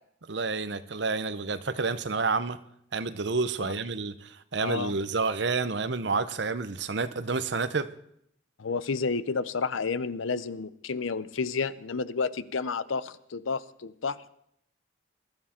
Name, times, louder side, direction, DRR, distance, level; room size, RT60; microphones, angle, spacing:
voice 1, 0.3-2.6 2.9-7.9, right 4 dB, 60° right, 13 dB, 0.8 m, -29 dB
voice 2, 4.6-4.9 8.6-14.3, left 4 dB, 85° left, 16 dB, 0.7 m, -31 dB
22.0 x 12.5 x 4.4 m, 0.70 s
head